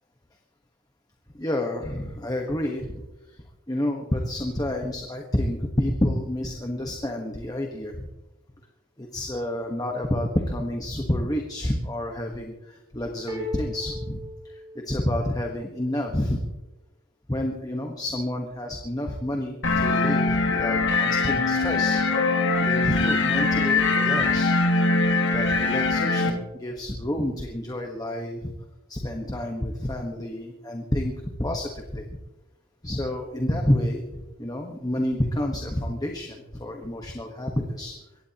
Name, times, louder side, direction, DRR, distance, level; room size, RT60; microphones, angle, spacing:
voice 1, 1.3-8.1 9.0-16.5 17.3-22.0 22.6-24.5 25.3-28.5 28.9-31.1 31.4-32.2 32.8-37.9, left 1 dB, 15° left, 2 dB, 1.2 m, -29 dB
sound 1, 13.3-15.3, left 2 dB, 20° right, 4.6 m, -36 dB
sound 2, 19.6-26.3, left 3 dB, 55° left, 1.8 m, -22 dB
23.0 x 17.0 x 2.9 m, 1.0 s
head